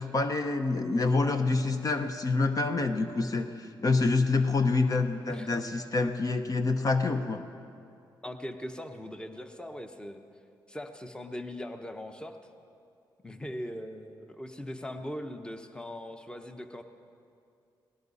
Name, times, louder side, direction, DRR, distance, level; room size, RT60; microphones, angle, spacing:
voice 1, 0.0-7.4, left 3 dB, 45° left, 7 dB, 0.9 m, -27 dB
voice 2, 8.2-10.2 10.7-12.4 13.2-16.8, left 1 dB, 10° left, 7 dB, 1.0 m, -40 dB
18.5 x 17.0 x 4.2 m, 2.5 s
cardioid pair, 75°, 9 cm